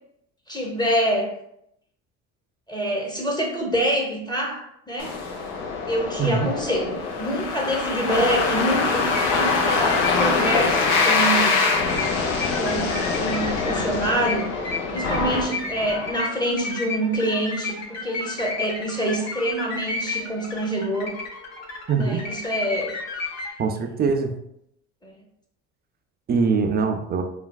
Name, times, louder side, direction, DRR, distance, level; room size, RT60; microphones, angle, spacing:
voice 1, 0.5-1.3 2.7-5.2 5.9-11.6 12.6-14.5 14.9-21.1 21.9-22.9 25.0-25.2, right 1 dB, 10° left, -2 dB, 0.7 m, -26 dB
sound 1, 5.0-16.2, left 4 dB, 80° left, 0.6 m, -24 dB
sound 2, 9.1-23.5, left 3 dB, 50° left, 0.9 m, -33 dB
voice 2, 21.9-22.2 23.6-24.3 26.3-27.2, right 5 dB, 30° right, 6 dB, 0.4 m, -22 dB
3.3 x 2.2 x 2.2 m, 0.76 s
supercardioid pair, 75°, 34 cm